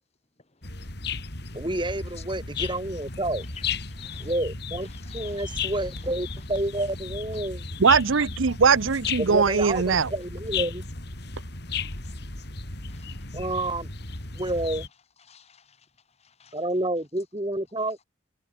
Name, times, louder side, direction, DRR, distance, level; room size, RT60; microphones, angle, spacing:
sound 1, 0.6-14.9, left 5 dB, 55° left, 4.1 m, -35 dB
voice 1, 1.5-3.4 4.2-4.9 5.1-7.6 9.2-10.8 13.3-13.9 14.3-14.9 16.5-18.0, right 1 dB, 25° right, 3.1 m, -29 dB
voice 2, 3.9-4.3 4.9-5.6 12.0-12.1 12.9-13.2 15.3-15.9 16.2-16.6, left 8 dB, 35° left, 1.8 m, -53 dB
voice 3, 7.8-10.1, right 5 dB, 85° right, 0.7 m, -20 dB
head